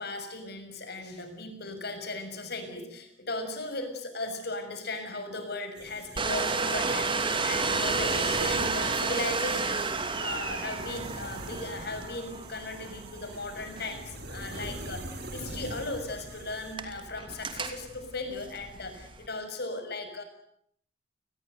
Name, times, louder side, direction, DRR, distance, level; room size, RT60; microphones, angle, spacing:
voice 1, 0.0-9.9 10.2-20.2, left 2 dB, 60° left, 7 dB, 6.4 m, -37 dB
sound 1, 5.8-16.8, right 1 dB, 60° right, 7.0 m, -43 dB
Domestic sounds home sounds, 6.2-19.3, right 4 dB, 30° right, 2.8 m, -32 dB
29.5 x 20.5 x 8.1 m, 0.67 s
head